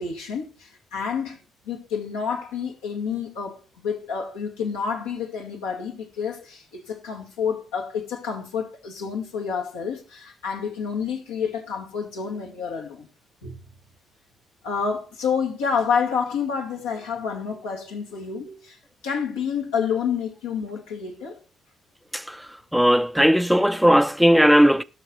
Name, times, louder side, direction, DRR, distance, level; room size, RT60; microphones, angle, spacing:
voice 1, 0.0-1.4 1.7-13.1 13.4-13.6 14.6-18.8 19.0-21.4, left 6 dB, 75° left, 2.0 m, -29 dB
voice 2, 22.1-22.5 22.7-24.8, equal, ahead, 0.6 m, -17 dB
16.5 x 6.5 x 4.3 m
figure-of-eight pair, 40°, 0 cm